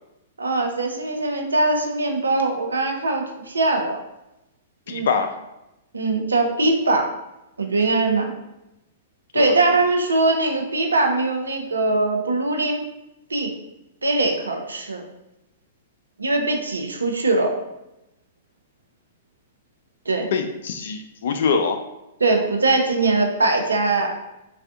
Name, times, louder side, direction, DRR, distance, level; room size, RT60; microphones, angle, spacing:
voice 1, 0.4-4.0 4.9-5.1 5.9-7.1 7.6-8.3 9.3-12.8 13.3-13.5 14.0-15.0 16.2-17.5 20.1-20.3 22.2-24.1, right 2 dB, 85° right, 3 dB, 0.5 m, -21 dB
voice 2, 4.9-5.3 9.3-9.5 20.3-21.8, left 5 dB, 65° left, 6 dB, 0.3 m, -24 dB
3.4 x 2.4 x 2.4 m, 0.92 s
figure-of-eight pair, 110°, 0 cm